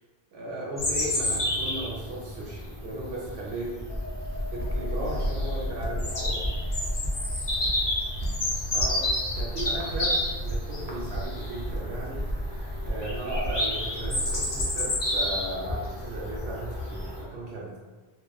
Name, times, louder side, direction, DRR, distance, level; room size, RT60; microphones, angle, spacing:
voice 1, 0.3-3.8 4.5-6.4 8.7-12.3 12.8-17.8, right 1 dB, 85° right, -5 dB, 0.8 m, -36 dB
Bird vocalization bird call bird song, 0.8-17.2, left 1 dB, 35° left, 0.5 m, -30 dB
sound 1, 3.8-11.3 11.6-11.8, left 1 dB, 60° left, 0.8 m, -35 dB
sound 2, 4.2-15.1, right 1 dB, 55° right, 0.5 m, -36 dB
2.3 x 2.2 x 2.5 m, 1.4 s
omnidirectional pair, 1.1 m